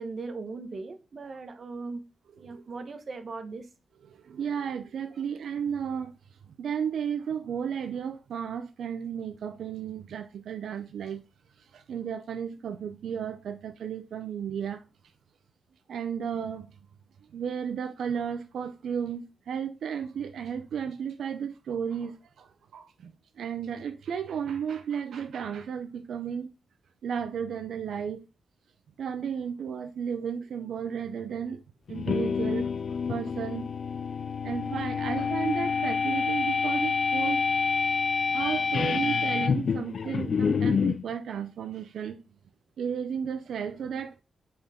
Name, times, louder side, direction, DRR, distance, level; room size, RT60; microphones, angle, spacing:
voice 1, 0.0-2.0 2.4-3.7, right 3 dB, 45° right, 1.0 m, -38 dB
voice 2, 4.1-6.2 6.5-11.2 11.7-14.8 15.9-16.8 17.3-26.5 27.0-28.3 29.0-31.6 31.9-32.7 33.1-33.7 34.4-37.4 38.3-42.2 42.8-44.1, right 7 dB, 85° right, 0.6 m, -33 dB
sound 1, 31.9-41.0, left 5 dB, 50° left, 0.3 m, -27 dB
6.8 x 4.4 x 3.6 m
wide cardioid pair, 155°, 0 cm